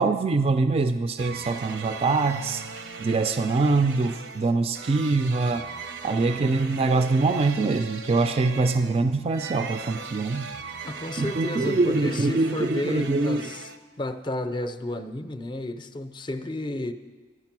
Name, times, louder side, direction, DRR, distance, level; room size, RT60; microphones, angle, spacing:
voice 1, 0.0-2.6 3.0-5.7 6.0-10.5 11.2-13.5, right 3 dB, 35° right, 9 dB, 0.3 m, -24 dB
sound 1, 1.2-13.8, right 5 dB, 75° right, 0.7 m, -38 dB
voice 2, 10.8-13.7 14.0-16.9, left 1 dB, 25° left, 10 dB, 0.5 m, -32 dB
12.0 x 9.7 x 5.9 m, 1.3 s
head